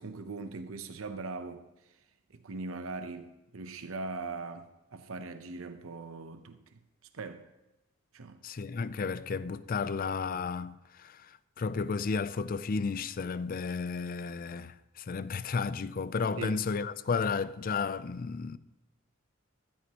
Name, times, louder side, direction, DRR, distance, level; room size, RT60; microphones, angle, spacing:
voice 1, 0.0-1.6 2.3-6.8 7.1-7.4 8.1-8.4 16.4-16.6, right 3 dB, 80° right, 0.8 m, -40 dB
voice 2, 8.4-18.6, left 5 dB, 45° left, 0.4 m, -33 dB
14.5 x 13.0 x 2.9 m
head